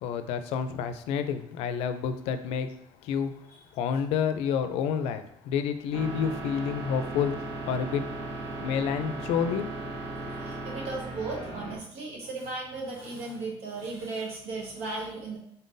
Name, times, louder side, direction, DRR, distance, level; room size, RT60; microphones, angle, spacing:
voice 1, 0.0-2.7 3.0-3.3 3.7-7.3 7.7-8.0 8.6-9.7, left 7 dB, 80° left, 10 dB, 0.4 m, -29 dB
sound 1, 5.9-11.8, right 2 dB, 45° right, 1.4 m, -37 dB
voice 2, 10.4-15.4, right 3 dB, 80° right, -1 dB, 1.4 m, -36 dB
4.0 x 3.7 x 2.6 m, 0.76 s
cardioid pair, 150°, 10 cm